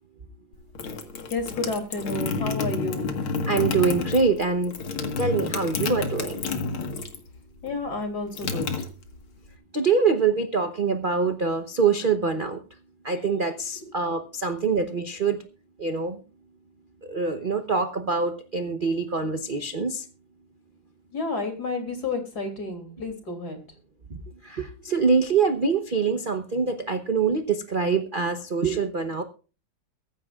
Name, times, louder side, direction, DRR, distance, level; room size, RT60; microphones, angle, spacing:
sound 1, 0.5-7.3 7.6-9.5, left 4 dB, 85° left, 2.5 m, -30 dB
voice 1, 1.3-3.2 7.6-8.9 13.8-13.9 21.1-23.6, left 3 dB, 50° left, 5 dB, 3.4 m, -31 dB
voice 2, 3.5-4.7 5.2-6.4 9.7-12.6 13.0-15.4 15.8-16.2 17.0-20.1 24.4-29.2, right 4 dB, 40° right, 7 dB, 0.8 m, -24 dB
23.0 x 10.5 x 2.4 m, 0.35 s
omnidirectional pair, 2.3 m